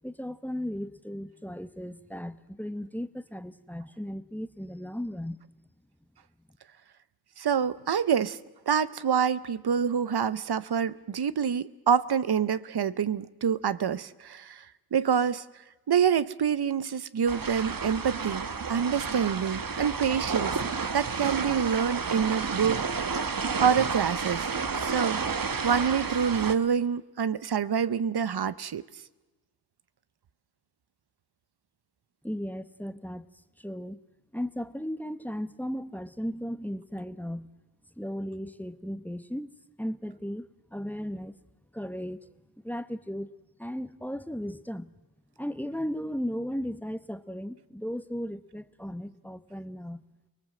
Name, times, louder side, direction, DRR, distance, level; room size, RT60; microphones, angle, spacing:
voice 1, 0.0-5.4 32.2-33.3 33.6-34.0 34.3-37.5 38.0-39.5 39.8-41.4 41.7-42.3 42.6-43.3 43.6-44.9 45.4-50.0, equal, 5° left, 14 dB, 1.0 m, -36 dB
voice 2, 7.4-8.4 8.7-14.6 14.9-15.4 15.9-20.6 20.9-23.3 23.6-25.2 25.6-28.8, right 7 dB, 85° right, 16 dB, 0.8 m, -27 dB
sound 1, 17.3-26.6, right 5 dB, 60° right, 1.3 m, -31 dB
29.0 x 19.5 x 7.6 m, 1.1 s
wide cardioid pair, 60°, 38 cm